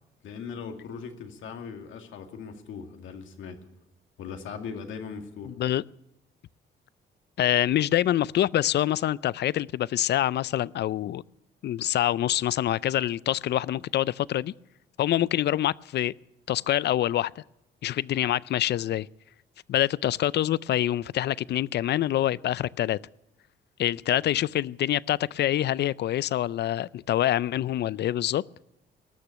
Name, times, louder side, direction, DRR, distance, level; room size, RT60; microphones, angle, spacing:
voice 1, 0.2-3.6 4.2-5.5 24.2-24.4, left 6 dB, 80° left, 2.2 m, -39 dB
voice 2, 5.5-5.8 7.4-11.2 11.6-14.5 15.0-16.1 16.5-17.4 17.8-19.1 19.7-23.0 23.8-28.4, left 12 dB, 60° left, 0.4 m, -26 dB
20.0 x 6.7 x 9.8 m
cardioid pair, 90°, 20 cm